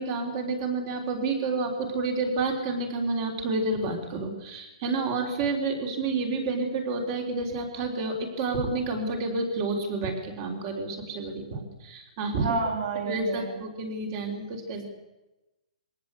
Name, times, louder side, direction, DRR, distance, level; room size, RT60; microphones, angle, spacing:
voice 1, 0.0-12.7 13.1-14.9, right 3 dB, 25° right, 2 dB, 3.7 m, -29 dB
voice 2, 12.4-13.5, right 4 dB, 70° right, 4 dB, 6.1 m, -29 dB
22.5 x 18.0 x 8.4 m, 1.0 s
hypercardioid pair, 175°, 4 cm